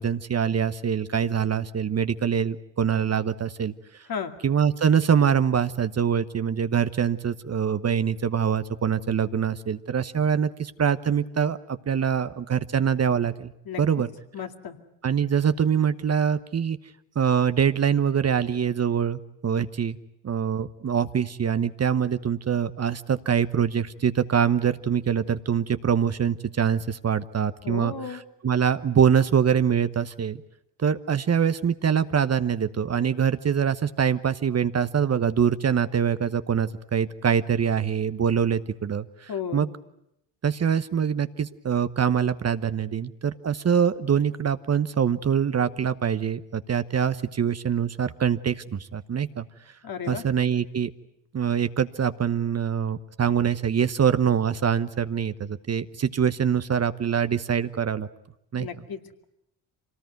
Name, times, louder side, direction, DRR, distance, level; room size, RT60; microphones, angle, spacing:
voice 1, 0.0-3.7 4.4-13.5 13.8-14.1 15.0-16.8 17.1-20.0 20.2-30.4 30.8-39.7 40.4-49.5 50.1-50.9 51.3-58.1 58.5-58.7, right 7 dB, 35° right, 12 dB, 1.0 m, -24 dB
voice 2, 14.3-14.8 27.6-28.2 39.3-39.7 49.8-50.2 58.6-59.2, left 7 dB, 50° left, 5 dB, 2.4 m, -34 dB
25.5 x 19.0 x 9.3 m, 0.82 s
hypercardioid pair, 55°, 44 cm